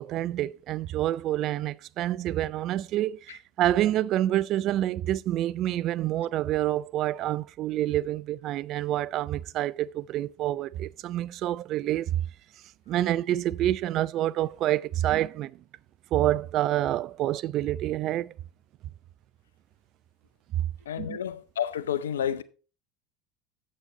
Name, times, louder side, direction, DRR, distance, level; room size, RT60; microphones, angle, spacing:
voice 1, 0.0-12.2 12.9-15.6 16.1-18.3 20.5-20.6 21.0-21.2, right 13 dB, 50° right, 0.4 m, -27 dB
voice 2, 20.9-22.4, left 9 dB, 85° left, 0.6 m, -30 dB
8.0 x 7.5 x 4.0 m
hypercardioid pair, 85°, 0 cm